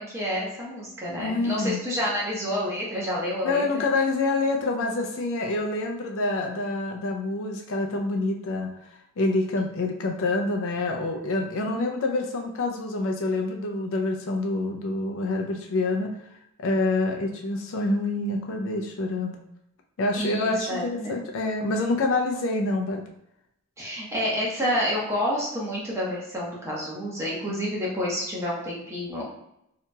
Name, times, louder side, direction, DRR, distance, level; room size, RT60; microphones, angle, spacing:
voice 1, 0.0-3.6 20.2-21.1 23.8-29.3, equal, 15° right, -5 dB, 0.8 m, -29 dB
voice 2, 1.2-1.9 3.4-16.1 16.6-19.4 20.0-23.0 27.5-27.6, left 2 dB, 60° left, 2 dB, 0.4 m, -27 dB
2.8 x 2.7 x 2.2 m, 0.81 s
head